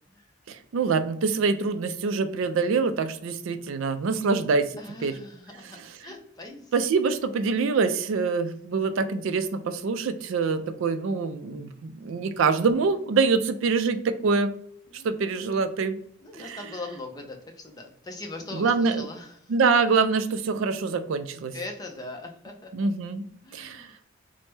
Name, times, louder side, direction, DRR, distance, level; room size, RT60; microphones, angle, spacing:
voice 1, 0.5-4.7 5.0-5.1 6.7-14.5 14.9-16.0 16.4-16.6 18.5-19.0 19.5-21.6 22.7-23.2 23.5-23.9, right 4 dB, 65° right, 10 dB, 0.3 m, -25 dB
voice 2, 4.8-6.7 14.9-15.4 16.2-19.5 21.5-22.9 23.4-24.0, left 2 dB, 20° left, 2 dB, 0.4 m, -41 dB
3.2 x 2.0 x 3.1 m, 0.66 s
head